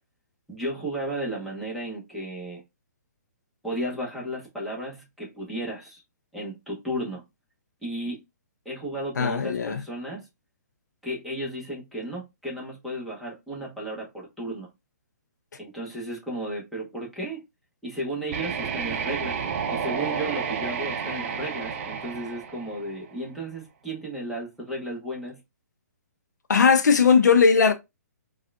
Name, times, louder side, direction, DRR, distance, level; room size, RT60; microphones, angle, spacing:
voice 1, 0.5-2.6 3.6-6.0 6.3-7.2 7.8-8.2 8.6-10.2 11.0-14.7 15.6-17.4 17.8-19.4 19.7-25.4, right 1 dB, ahead, 1.0 m, -34 dB
voice 2, 9.2-9.8 26.5-27.7, left 5 dB, 75° left, 0.5 m, -18 dB
sound 1, 18.3-23.2, right 6 dB, 45° right, 0.6 m, -31 dB
3.5 x 2.4 x 2.3 m
hypercardioid pair, 140°, 9 cm